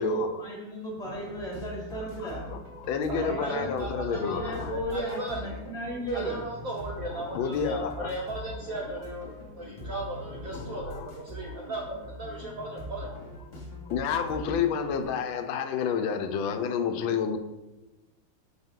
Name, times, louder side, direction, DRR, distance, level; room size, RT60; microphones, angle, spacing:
voice 1, 0.0-2.5 3.1-3.7 4.1-6.4, right 1 dB, ahead, 1.2 m, -34 dB
sound 1, 1.0-15.0, left 1 dB, 25° left, 1.2 m, -42 dB
voice 2, 2.2-2.6 2.9-4.7 7.1-8.1 9.7-9.9 10.5-11.1 11.5-11.6 13.9-17.4, left 7 dB, 75° left, 1.3 m, -30 dB
voice 3, 3.1-5.4 6.1-13.1, right 2 dB, 70° right, 0.8 m, -36 dB
6.3 x 4.2 x 3.6 m
omnidirectional pair, 2.3 m